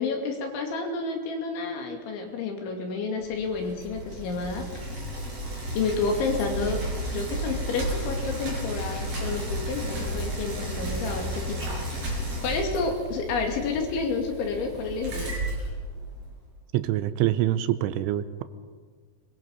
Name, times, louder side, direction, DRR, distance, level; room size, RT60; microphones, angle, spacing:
voice 1, 0.0-4.8 5.7-6.8 7.1-11.6 12.4-15.4, left 4 dB, 75° left, 2 dB, 4.8 m, -30 dB
Bicycle, 3.2-16.4, right 1 dB, 35° right, 6.2 m, -33 dB
voice 2, 16.7-18.4, right 13 dB, 85° right, 12 dB, 3.2 m, -25 dB
23.0 x 22.0 x 5.4 m, 1.5 s
omnidirectional pair, 5.4 m